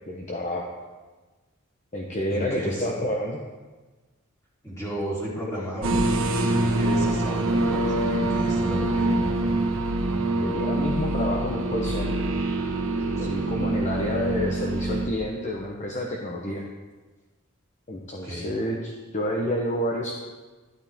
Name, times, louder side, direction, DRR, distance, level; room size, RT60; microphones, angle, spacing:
voice 1, 0.1-0.7 1.9-3.4 10.4-12.3 13.2-16.6 17.9-20.1, left 1 dB, 35° left, 0 dB, 0.9 m, -29 dB
voice 2, 2.3-3.0 4.6-9.1 13.2-13.5 18.2-18.5, equal, 15° left, -7 dB, 3.3 m, -34 dB
sound 1, 5.8-15.1, right 2 dB, 65° right, 1.4 m, -25 dB
12.0 x 11.5 x 3.6 m, 1.3 s
head